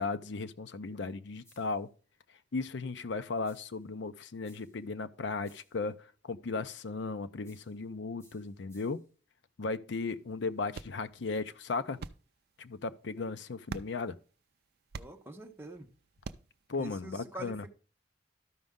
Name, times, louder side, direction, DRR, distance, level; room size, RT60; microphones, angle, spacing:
voice 1, 0.0-1.9 2.5-9.0 9.6-12.0 12.6-14.2 16.7-17.6, left 3 dB, 70° left, 0.6 m, -36 dB
sound 1, 1.4-1.9 3.4-3.9 4.4-4.9 5.4-5.9 7.4-7.9 8.2-9.1, equal, 15° left, 2.5 m, -65 dB
sound 2, 9.9-16.7, right 4 dB, 55° right, 0.4 m, -48 dB
voice 2, 14.9-15.9 16.8-17.7, right 2 dB, 15° right, 1.0 m, -46 dB
12.5 x 5.2 x 3.6 m
head